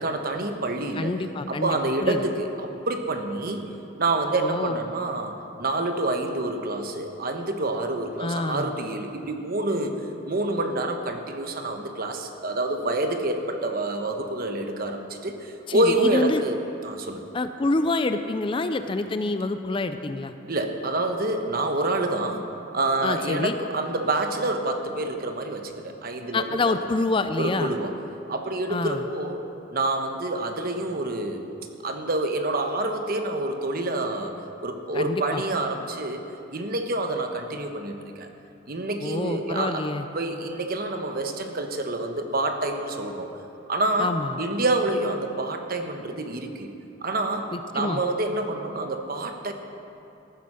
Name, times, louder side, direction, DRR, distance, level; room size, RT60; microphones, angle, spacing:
voice 1, 0.0-1.2 1.5-3.6 4.0-10.0 10.2-16.6 16.8-17.2 20.5-26.6 27.4-27.9 28.3-29.4 29.7-31.4 31.8-34.3 34.6-36.2 36.5-38.3 38.7-39.9 40.1-43.4 43.7-46.7 47.0-47.5 47.7-49.5, right 2 dB, 45° right, 5 dB, 1.1 m, -27 dB
voice 2, 1.0-2.2 4.4-4.8 8.2-8.7 15.7-16.4 17.3-20.3 23.0-23.6 26.3-27.7 28.7-29.0 34.9-35.4 39.0-40.1 44.0-44.4 47.5-48.0, left 2 dB, 25° left, 9 dB, 0.4 m, -27 dB
14.5 x 9.8 x 6.2 m, 2.7 s
head